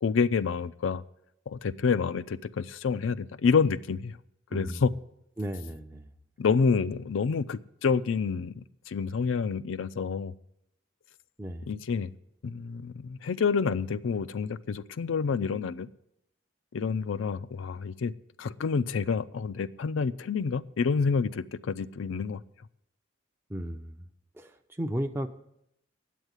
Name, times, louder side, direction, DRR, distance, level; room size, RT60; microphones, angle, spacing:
voice 1, 0.0-1.0 1.5-4.2 4.5-4.9 6.4-10.3 11.7-12.1 12.4-15.9 16.7-18.1 18.4-22.4, left 5 dB, 70° left, 15 dB, 0.4 m, -28 dB
voice 2, 4.5-4.8 5.4-6.1 11.4-11.7 23.5-24.1 24.3-25.3, equal, 10° right, 4 dB, 0.5 m, -34 dB
9.2 x 8.1 x 8.1 m, 0.78 s
head